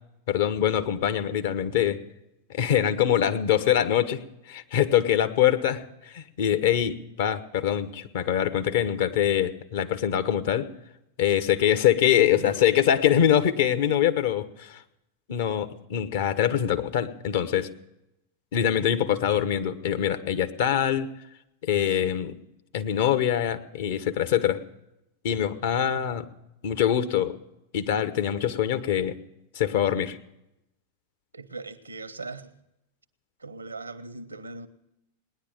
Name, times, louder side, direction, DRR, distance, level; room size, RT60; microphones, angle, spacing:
voice 1, 0.3-2.0 2.5-10.7 11.2-14.8 15.3-17.7 18.5-21.1 21.6-22.3 22.7-24.6 25.2-26.3 26.6-27.3 27.7-29.2 29.5-30.2, left 10 dB, 55° left, 10 dB, 1.0 m, -24 dB
voice 2, 31.3-32.5 33.4-34.7, right 3 dB, 80° right, 13 dB, 0.9 m, -39 dB
18.5 x 10.5 x 7.3 m, 0.87 s
figure-of-eight pair, 90°, 0 cm